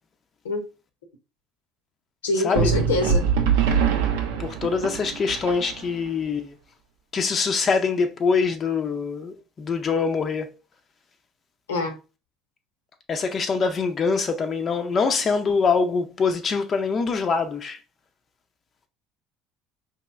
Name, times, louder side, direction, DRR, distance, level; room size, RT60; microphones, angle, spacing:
voice 1, 2.2-3.3 11.7-12.0, left 2 dB, 80° left, 0.7 m, -25 dB
sound 1, 2.6-6.1, right 7 dB, 70° right, 0.5 m, -23 dB
voice 2, 4.4-6.5 7.1-10.5 13.1-17.8, left 5 dB, 35° left, 0.5 m, -24 dB
4.5 x 2.9 x 2.3 m
figure-of-eight pair, 60°, 0 cm